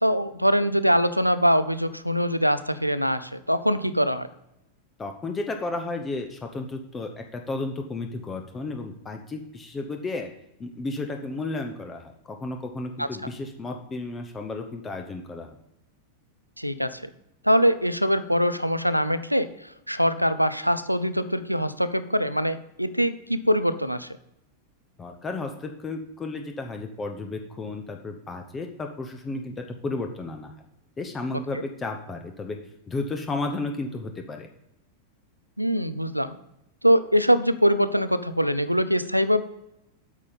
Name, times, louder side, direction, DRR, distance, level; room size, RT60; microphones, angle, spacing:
voice 1, 0.0-4.3 13.0-13.1 16.6-17.1 17.4-19.5 19.9-24.1 35.6-36.4 36.8-39.4, equal, 90° right, 14 dB, 0.4 m, -23 dB
voice 2, 5.0-10.3 10.6-15.6 25.0-30.5 31.0-32.6 32.9-34.5, left 3 dB, 20° left, 4 dB, 0.8 m, -33 dB
8.4 x 5.5 x 5.1 m, 0.86 s
figure-of-eight pair, 90°, 0 cm